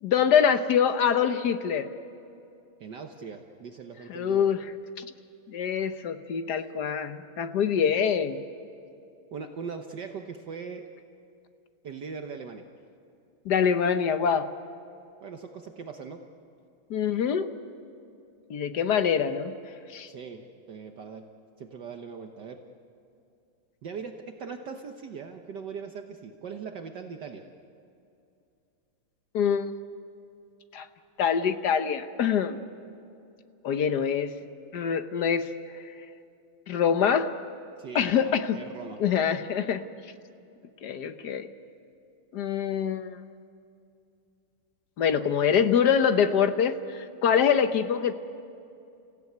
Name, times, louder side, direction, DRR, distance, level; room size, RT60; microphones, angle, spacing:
voice 1, 0.0-1.9 4.1-4.6 5.0-5.1 5.5-8.4 13.4-14.5 16.9-17.5 18.5-19.5 19.9-20.1 29.3-29.6 30.7-30.8 31.2-32.6 33.6-34.3 34.7-35.5 36.7-37.3 37.9-38.6 39.0-39.8 40.8-41.5 42.3-43.2 45.0-48.1, left 7 dB, 55° left, 9 dB, 1.3 m, -24 dB
voice 2, 2.8-4.5 6.6-6.7 9.3-10.9 11.8-12.7 15.2-16.3 20.1-21.3 21.6-22.6 23.8-27.5 37.8-39.0, right 5 dB, 60° right, 4 dB, 1.5 m, -40 dB
30.0 x 16.0 x 9.4 m, 2.6 s
omnidirectional pair, 2.4 m